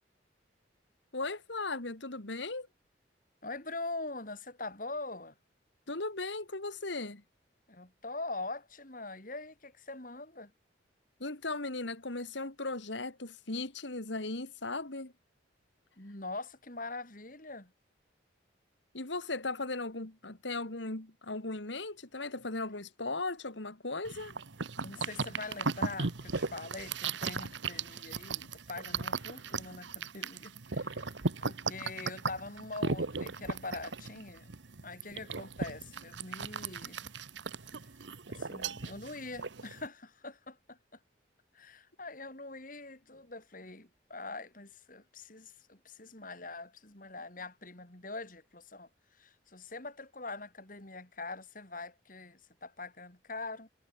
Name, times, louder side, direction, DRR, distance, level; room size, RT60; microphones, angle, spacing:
voice 1, 1.1-2.7 5.9-7.2 11.2-15.1 18.9-24.4, left 3 dB, 75° left, 2.5 m, -37 dB
voice 2, 3.4-5.3 7.7-10.5 16.0-17.7 24.8-34.5 34.8-37.1 38.3-41.0 41.5-48.9 49.2-53.7, left 3 dB, 45° left, 4.3 m, -43 dB
sound 1, 24.0-39.9, right 4 dB, 75° right, 1.2 m, -37 dB
head